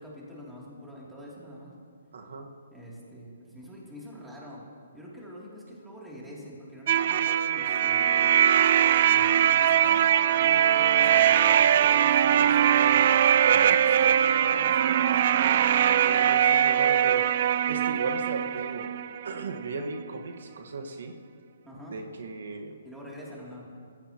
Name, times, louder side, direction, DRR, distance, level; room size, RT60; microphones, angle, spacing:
voice 1, 0.0-1.7 2.7-4.6 4.9-8.3 9.1-10.0 10.3-13.1 13.3-14.1 14.4-15.2 21.6-22.0 22.8-23.7, equal, 5° right, -6 dB, 2.8 m, -45 dB
voice 2, 2.1-2.5 16.0-17.3 17.7-18.9 19.2-21.1 21.9-22.8, right 3 dB, 75° right, 3 dB, 1.4 m, -36 dB
sound 1, 6.9-19.5, right 10 dB, 40° right, 0.3 m, -21 dB
21.5 x 15.0 x 2.9 m, 2.2 s
hypercardioid pair, 165°, 0 cm